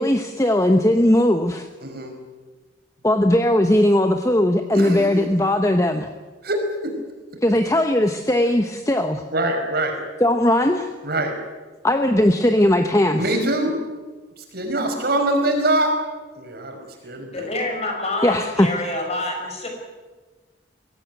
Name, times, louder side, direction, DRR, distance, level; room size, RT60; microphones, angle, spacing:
voice 1, 0.0-1.7 3.0-6.1 7.4-9.2 10.2-10.9 11.8-13.4 18.2-18.7, left 1 dB, 15° left, 6 dB, 0.9 m, -18 dB
voice 2, 1.8-2.1 4.7-5.3 6.4-6.9 9.3-10.0 11.0-11.4 13.2-13.7 14.5-15.9 16.4-17.5, right 1 dB, 55° right, 4 dB, 5.2 m, -23 dB
voice 3, 17.3-19.7, left 2 dB, 35° left, 2 dB, 5.7 m, -27 dB
23.0 x 16.5 x 9.4 m, 1.3 s
head